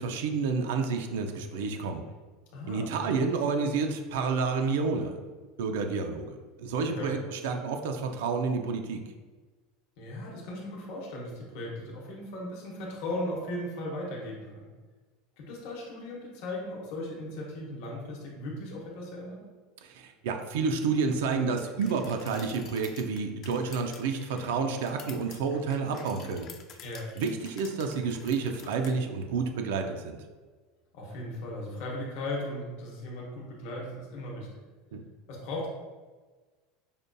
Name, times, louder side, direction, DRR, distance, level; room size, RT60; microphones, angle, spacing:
voice 1, 0.0-2.0 2.7-5.2 5.6-9.0 19.8-26.5 27.2-30.2 34.9-35.0, right 4 dB, 85° right, 4 dB, 0.3 m, -30 dB
voice 2, 2.5-2.9 7.0-7.1 10.0-14.7 15.4-19.4 26.8-27.1 30.9-34.5 35.3-35.7, left 1 dB, 60° left, -2 dB, 0.8 m, -37 dB
sound 1, 21.6-29.0, left 7 dB, 35° left, 0.3 m, -50 dB
5.1 x 2.2 x 2.5 m, 1.3 s
supercardioid pair, 160°, 0 cm